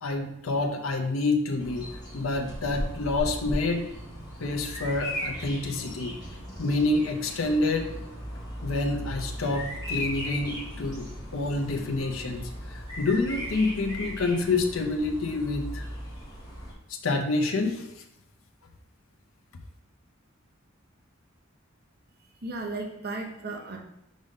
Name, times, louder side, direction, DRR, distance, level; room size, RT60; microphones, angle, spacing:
voice 1, 0.0-3.8 4.4-6.2 6.6-8.1 8.6-15.9 16.9-18.0, left 2 dB, 85° left, 3 dB, 0.7 m, -28 dB
Bird vocalization bird call bird song, 1.6-16.7, equal, 20° left, 2.0 m, -37 dB
voice 2, 22.2-23.8, right 2 dB, 50° right, 1 dB, 0.8 m, -35 dB
5.3 x 5.1 x 3.6 m, 0.84 s
head